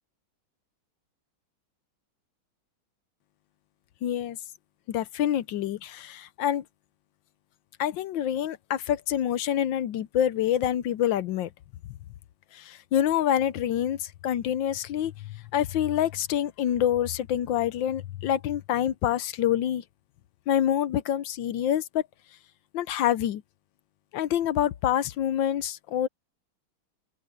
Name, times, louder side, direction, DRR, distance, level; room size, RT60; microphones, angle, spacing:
voice 1, 4.0-4.4 4.9-6.6 7.8-11.5 12.5-19.8 20.5-22.0 22.7-23.4 24.1-26.1, left 10 dB, 70° left, 1.4 m, -26 dB
open air
omnidirectional pair, 2.3 m